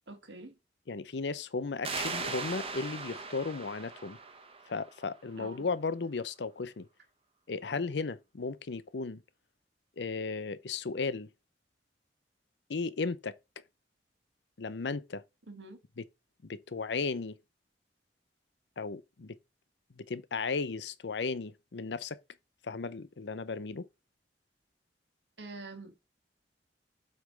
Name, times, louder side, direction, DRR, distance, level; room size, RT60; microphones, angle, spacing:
voice 1, 0.1-0.6 5.3-5.7 15.5-15.8 25.4-26.0, right 2 dB, 85° right, 1.7 m, -46 dB
voice 2, 0.9-4.2 4.7-6.9 7.5-9.2 10.0-11.3 12.7-13.4 14.6-15.2 16.0-16.1 16.4-17.4 18.8-19.4 20.0-22.2 22.6-23.9, left 4 dB, 70° left, 0.6 m, -35 dB
sound 1, 1.8-5.2, right 4 dB, 35° right, 1.1 m, -39 dB
7.8 x 3.3 x 5.1 m
head